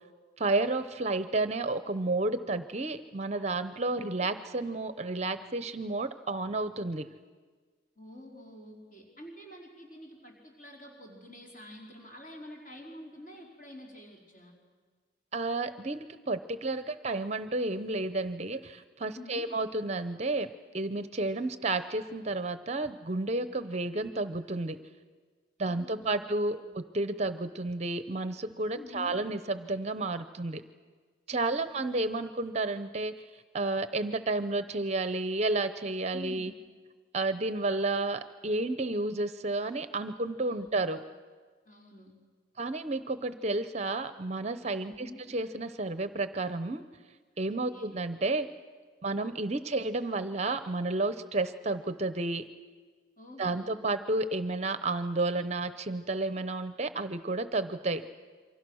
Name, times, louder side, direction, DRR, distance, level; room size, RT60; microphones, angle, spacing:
voice 1, 0.4-7.1 15.3-24.8 25.6-30.6 31.3-36.5 37.1-41.0 42.6-46.8 47.4-48.5 49.0-52.5 53.4-58.0, right 2 dB, 35° right, 11 dB, 0.7 m, -31 dB
voice 2, 8.0-14.5 19.1-19.5 25.7-26.3 26.6-26.8 28.7-29.2 31.3-31.6 36.1-36.5 40.4-40.9 41.6-42.2 44.9-45.2 47.5-48.0 53.2-53.9, left 1 dB, 45° left, -1 dB, 4.3 m, -48 dB
28.0 x 24.5 x 6.3 m, 1.5 s
head